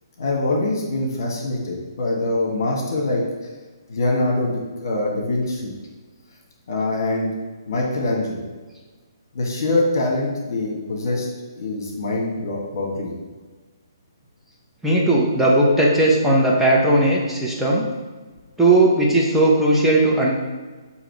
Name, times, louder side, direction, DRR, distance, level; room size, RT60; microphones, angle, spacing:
voice 1, 0.2-3.5 3.9-5.7 6.7-7.3 7.7-8.5 9.3-11.3 11.5-13.1, left 2 dB, 55° left, -2 dB, 1.5 m, -24 dB
voice 2, 14.8-17.8 18.6-20.3, right 2 dB, 5° right, -5 dB, 1.0 m, -17 dB
6.9 x 3.0 x 4.6 m, 1.3 s
figure-of-eight pair, 135°, 2 cm